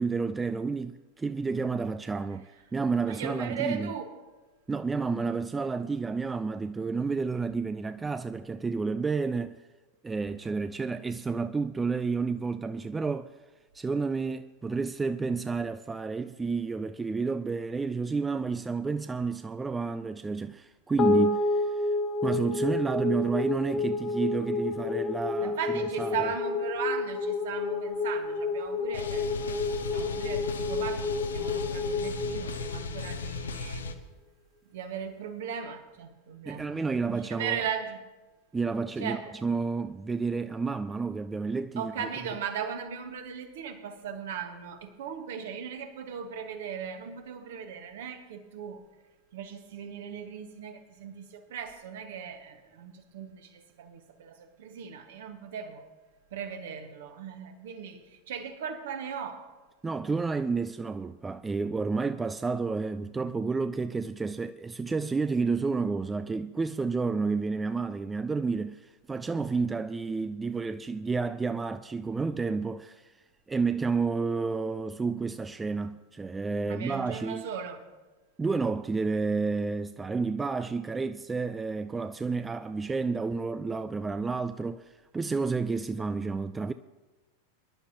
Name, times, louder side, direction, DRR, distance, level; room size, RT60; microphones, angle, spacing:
voice 1, 0.0-3.9 4.7-9.6 10.0-13.3 13.7-21.9 22.2-25.6 26.0-26.3 36.5-37.6 38.5-42.1 59.8-73.1 73.5-77.5 78.4-86.7, right 4 dB, 15° right, 0.3 m, -30 dB
voice 2, 3.1-4.1 25.4-33.9 34.7-38.0 39.0-39.3 41.8-48.8 49.3-55.8 56.3-59.5 76.7-77.9, right 7 dB, 55° right, 1.4 m, -38 dB
sound 1, 21.0-33.5, left 3 dB, 30° left, 1.6 m, -30 dB
sound 2, 28.9-33.9, left 3 dB, 70° left, 0.9 m, -36 dB
24.5 x 11.0 x 2.9 m
figure-of-eight pair, 90°, 0 cm